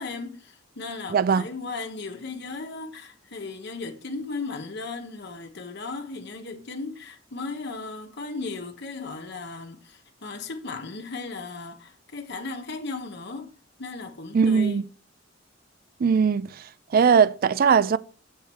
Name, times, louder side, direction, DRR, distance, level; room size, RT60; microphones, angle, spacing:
voice 1, 0.0-14.8, left 3 dB, 60° left, 1.2 m, -36 dB
voice 2, 1.1-1.4 14.3-14.8 16.0-16.5 16.9-18.0, right 6 dB, 50° right, 0.4 m, -19 dB
7.8 x 6.6 x 4.5 m
head